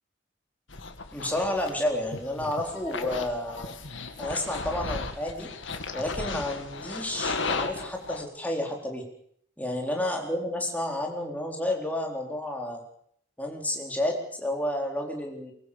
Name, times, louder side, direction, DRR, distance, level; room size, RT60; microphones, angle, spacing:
sound 1, 0.7-8.2, left 3 dB, 80° left, 2.2 m, -35 dB
voice 1, 1.1-3.8 4.2-5.5 5.9-9.0 9.6-12.8 13.4-15.5, left 1 dB, 10° left, 1 dB, 4.2 m, -30 dB
23.0 x 21.5 x 7.1 m, 0.66 s
head